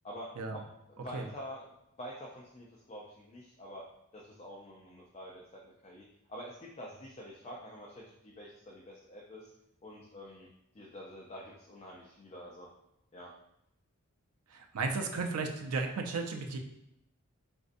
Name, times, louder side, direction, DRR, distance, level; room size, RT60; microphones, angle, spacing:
voice 1, 0.0-0.6 0.9-3.8 4.1-9.5 9.8-10.5 10.7-12.7 13.1-13.3, equal, 30° left, -3 dB, 0.4 m, -47 dB
voice 2, 14.5-16.6, right 4 dB, 90° right, 4 dB, 0.5 m, -34 dB
4.1 x 2.6 x 2.5 m, 0.81 s
head